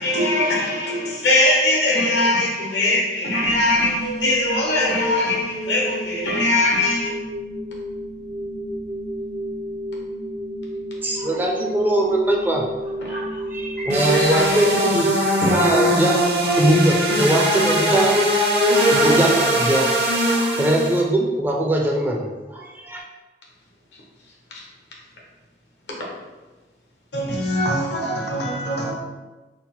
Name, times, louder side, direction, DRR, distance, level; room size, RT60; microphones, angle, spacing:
voice 1, 0.0-7.1 13.1-13.2 13.8-14.6 15.4-15.5 24.5-24.6, left 2 dB, 90° left, 1.1 m, -21 dB
sound 1, 3.4-15.5, equal, 80° right, 1.1 m, -31 dB
voice 2, 11.0-12.7 13.1-15.1 15.5-18.2 18.6-19.9 20.3-22.2 22.5-23.0, right 1 dB, 10° right, 0.4 m, -21 dB
sound 2, 13.9-21.0, equal, 65° right, 0.8 m, -20 dB
voice 3, 27.1-28.9, right 1 dB, 65° left, 0.7 m, -24 dB
3.7 x 2.1 x 4.1 m
head